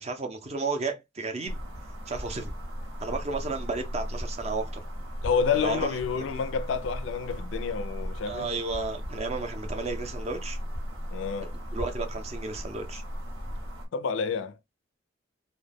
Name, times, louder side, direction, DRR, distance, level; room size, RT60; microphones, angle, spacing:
voice 1, 0.0-1.6 2.1-2.5 3.0-4.8 5.5-6.2 8.3-10.6 11.5-13.0, right 3 dB, 35° right, 0.5 m, -33 dB
sound 1, 1.5-13.9, equal, 90° right, 0.9 m, -37 dB
voice 2, 5.2-8.5 11.1-11.5 13.9-14.6, left 6 dB, 70° left, 0.4 m, -29 dB
2.2 x 2.1 x 3.3 m
head